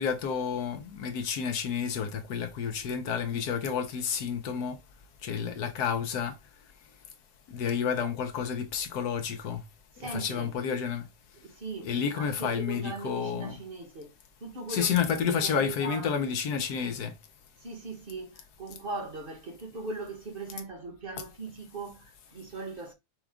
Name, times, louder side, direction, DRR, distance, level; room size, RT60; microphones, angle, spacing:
voice 1, 0.0-4.8 5.2-6.4 7.5-9.6 10.0-11.0 11.8-13.6 14.7-17.1, left 7 dB, 65° left, 1.1 m, -30 dB
voice 2, 10.0-10.5 11.4-14.1 14.4-15.0 15.3-16.1 17.6-22.9, right 3 dB, 35° right, 1.2 m, -39 dB
5.8 x 2.3 x 3.5 m
omnidirectional pair, 2.0 m